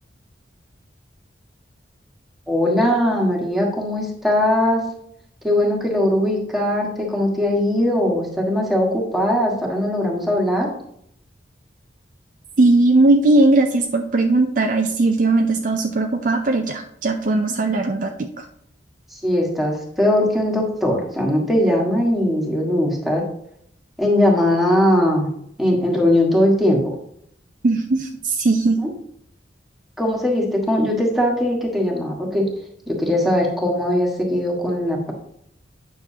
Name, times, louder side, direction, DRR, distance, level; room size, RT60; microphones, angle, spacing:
voice 1, 2.5-4.8 5.4-10.7 19.1-23.2 24.0-25.3 25.6-27.0 30.0-32.5 32.9-35.1, left 1 dB, ahead, -2 dB, 1.5 m, -20 dB
voice 2, 12.6-18.5 27.6-28.8, right 2 dB, 45° right, 4 dB, 0.4 m, -18 dB
9.1 x 6.2 x 2.8 m, 0.71 s
head